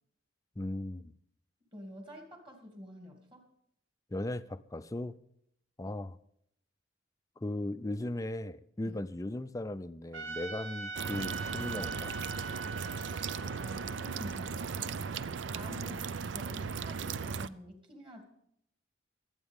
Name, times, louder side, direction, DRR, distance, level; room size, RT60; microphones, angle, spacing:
voice 1, 0.6-1.1 4.1-5.2 5.8-6.2 7.4-12.2 15.7-16.0, left 1 dB, 15° left, 0.4 m, -37 dB
voice 2, 1.6-3.4 8.8-9.0 13.4-15.0 15.5-16.0 16.3-18.2, equal, 25° right, 2.5 m, -48 dB
Trumpet, 10.1-15.3, right 3 dB, 80° right, 2.1 m, -43 dB
sound 1, 10.9-17.5, right 6 dB, 65° right, 0.5 m, -37 dB
24.0 x 8.9 x 3.6 m
head